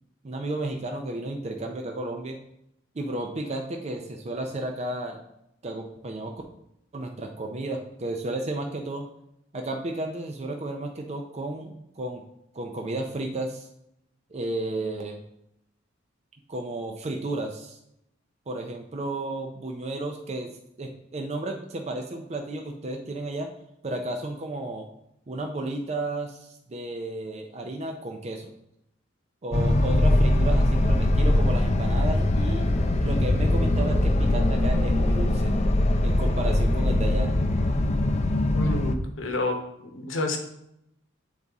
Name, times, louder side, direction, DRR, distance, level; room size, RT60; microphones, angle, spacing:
voice 1, 0.2-2.4 2.9-5.2 5.6-6.3 6.9-9.1 9.5-12.2 12.5-13.7 14.3-15.2 16.5-17.8 18.5-20.5 20.8-23.5 23.8-24.9 25.3-28.5 29.4-32.7 33.0-35.5 36.0-37.3, right 2 dB, 35° right, 2 dB, 0.5 m, -33 dB
sound 1, 29.5-39.0, left 1 dB, 35° left, 0.5 m, -22 dB
voice 2, 38.5-39.6 39.9-40.4, left 2 dB, 70° left, 4 dB, 1.0 m, -29 dB
8.4 x 4.0 x 3.5 m, 0.81 s
head